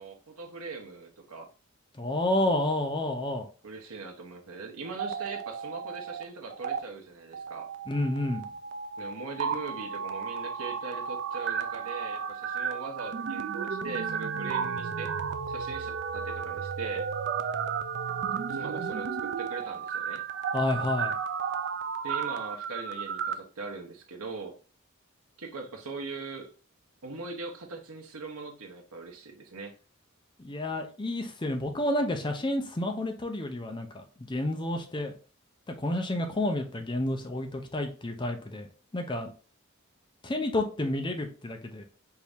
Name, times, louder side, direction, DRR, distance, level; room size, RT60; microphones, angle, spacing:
voice 1, 0.0-1.5 3.6-7.7 9.0-15.1 15.5-17.1 18.5-20.2 22.0-24.5 25.4-26.5 27.0-29.8, right 4 dB, 85° right, 2 dB, 1.0 m, -40 dB
voice 2, 2.0-3.5 7.9-8.4 20.5-21.2 30.4-35.1 35.7-38.7 38.9-39.3 40.2-41.9, left 1 dB, 20° left, 4 dB, 0.6 m, -30 dB
sound 1, 4.8-6.2 6.5-6.8 7.3-23.3, right 6 dB, 50° right, 0.4 m, -33 dB
4.6 x 2.7 x 3.4 m, 0.37 s
head